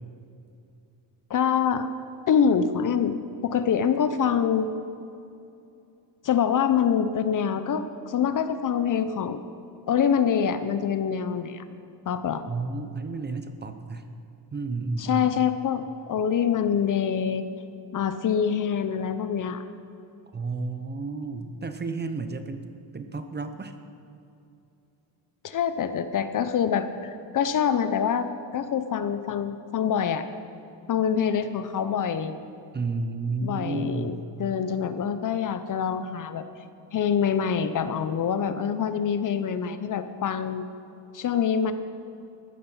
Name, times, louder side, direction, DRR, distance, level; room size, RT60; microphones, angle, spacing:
voice 1, 1.3-1.9 2.3-3.1 3.4-4.7 6.2-9.4 9.9-11.6 12.1-12.4 15.0-17.4 17.9-19.6 25.4-28.3 28.5-30.3 30.9-32.3 33.4-36.5 36.9-40.6 41.1-41.7, left 7 dB, 45° left, 11 dB, 0.8 m, -25 dB
voice 2, 12.5-14.1 14.5-15.3 20.3-23.7 32.7-34.2, right 3 dB, 25° right, 8 dB, 0.8 m, -32 dB
15.0 x 12.5 x 5.6 m, 2.7 s
cardioid pair, 130°, 44 cm